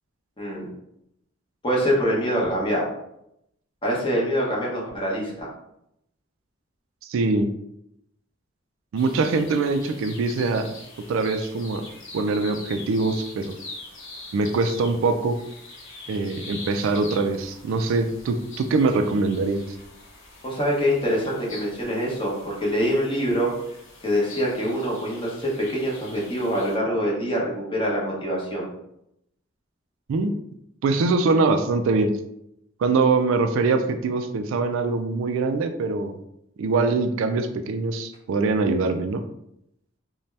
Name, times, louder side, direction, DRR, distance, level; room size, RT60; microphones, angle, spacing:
voice 1, 0.4-0.7 1.6-2.9 3.8-5.5 20.4-23.5 24.0-28.7, equal, 25° left, -4 dB, 0.8 m, -25 dB
voice 2, 7.1-7.5 8.9-10.7 11.1-11.8 12.1-13.5 14.3-15.4 16.1-19.6 30.1-30.3 30.8-32.1 32.8-36.2 36.6-39.2, right 3 dB, 70° right, 7 dB, 0.3 m, -23 dB
sound 1, 9.0-26.8, left 2 dB, 65° left, 0.8 m, -44 dB
2.6 x 2.2 x 3.2 m, 0.78 s
head